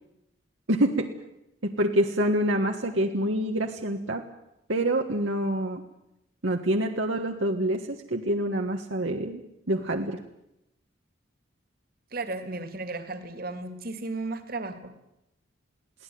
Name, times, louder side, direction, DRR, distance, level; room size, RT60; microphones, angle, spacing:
voice 1, 0.7-1.1 1.6-4.2 4.7-5.8 6.4-9.4 9.7-10.2, right 1 dB, 70° right, 2 dB, 1.6 m, -26 dB
voice 2, 12.1-15.0, right 2 dB, 50° right, 9 dB, 2.5 m, -34 dB
23.0 x 17.0 x 9.4 m, 0.87 s
head